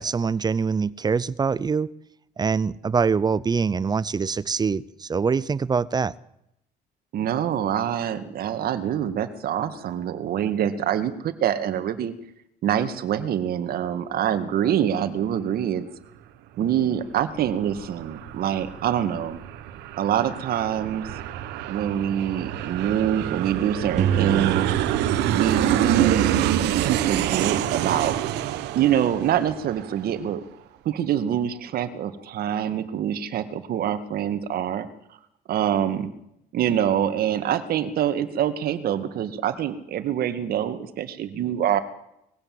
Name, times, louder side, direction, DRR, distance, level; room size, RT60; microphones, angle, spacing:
voice 1, 0.0-1.9 2.4-6.1, right 5 dB, 25° right, 20 dB, 0.7 m, -24 dB
voice 2, 7.1-12.1 12.6-15.9 16.6-19.4 20.0-21.1 21.7-24.7 25.2-26.4 26.8-28.1 28.8-30.4 30.9-34.9 35.5-36.1 36.5-41.8, right 10 dB, 65° right, 11 dB, 2.1 m, -25 dB
Aircraft, 17.0-30.2, right 11 dB, 90° right, 1.4 m, -27 dB
sound 1, 24.0-26.1, right 9 dB, 45° right, 2.0 m, -27 dB
21.0 x 16.0 x 7.9 m, 0.81 s
cardioid pair, 110°, 17 cm